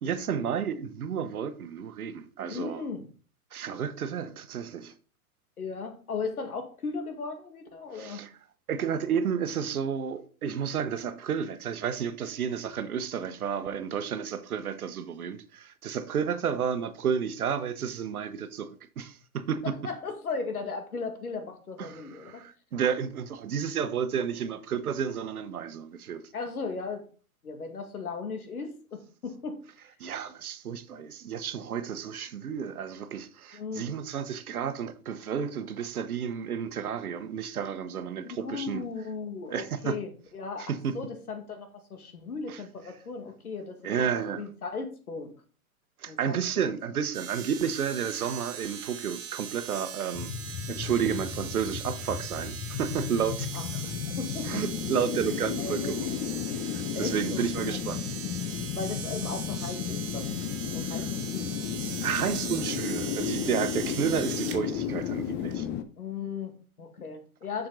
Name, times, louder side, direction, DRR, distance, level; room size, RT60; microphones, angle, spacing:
voice 1, 0.0-2.8 3.5-4.9 7.9-8.3 8.7-19.6 21.8-26.2 30.0-38.8 39.5-40.0 40.6-40.9 42.5-42.6 43.8-44.4 46.0-50.3 50.7-53.5 54.5-56.1 56.7-58.0 60.8-61.0 62.0-65.7, right 7 dB, 80° right, 1.1 m, -31 dB
voice 2, 2.5-3.1 5.6-8.2 19.6-22.4 26.3-27.1 27.4-29.6 33.5-33.8 38.2-43.8 44.4-45.3 46.1-46.4 53.5-54.6 55.6-55.9 57.0-57.8 58.7-60.3 60.7-61.5 66.0-67.7, left 4 dB, 90° left, 2.0 m, -37 dB
sound 1, 47.1-64.6 65.5-65.6, right 9 dB, 40° right, 1.9 m, -40 dB
sound 2, 50.1-65.8, left 9 dB, 25° left, 0.6 m, -33 dB
7.3 x 6.3 x 3.9 m
hypercardioid pair, 115°, 43 cm